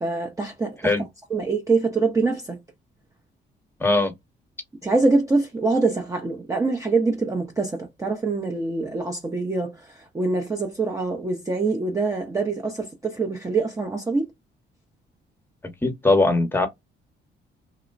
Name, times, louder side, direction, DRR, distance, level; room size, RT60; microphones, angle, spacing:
voice 1, 0.0-0.9 1.3-2.6 4.8-14.3, right 3 dB, 15° right, 0.5 m, -24 dB
voice 2, 3.8-4.1 15.8-16.7, left 2 dB, 10° left, 0.9 m, -20 dB
3.0 x 2.1 x 2.4 m
cardioid pair, 90°, 20 cm